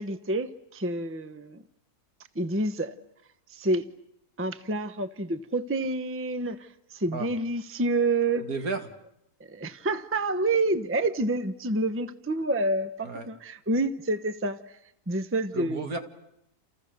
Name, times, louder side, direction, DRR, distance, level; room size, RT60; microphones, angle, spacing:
voice 1, 0.0-1.6 2.3-2.9 3.5-3.8 4.4-8.4 9.5-14.6 15.1-16.0, right 2 dB, 10° right, 11 dB, 0.8 m, -28 dB
voice 2, 8.3-8.9 13.0-13.3 15.5-16.0, right 3 dB, 65° right, 6 dB, 2.6 m, -33 dB
29.5 x 29.5 x 6.6 m, 0.78 s
omnidirectional pair, 1.6 m